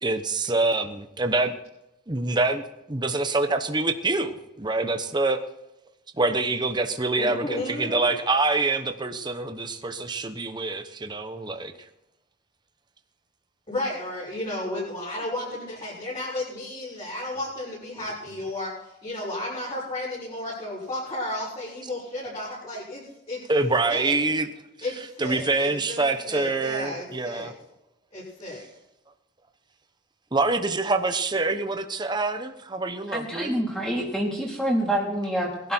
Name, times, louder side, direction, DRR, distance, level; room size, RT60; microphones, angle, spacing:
voice 1, 0.0-1.5 2.1-5.4 6.2-11.7 23.5-24.5 25.2-27.5 30.3-33.5, right 3 dB, 20° right, 7 dB, 1.0 m, -25 dB
voice 2, 7.2-8.1 13.7-18.7 19.0-23.5 23.9-24.1 24.8-27.5 28.1-28.6, left 1 dB, 30° left, -8 dB, 6.5 m, -33 dB
voice 3, 33.1-35.7, right 1 dB, 5° left, -3 dB, 3.8 m, -27 dB
21.5 x 12.0 x 4.5 m, 0.91 s
head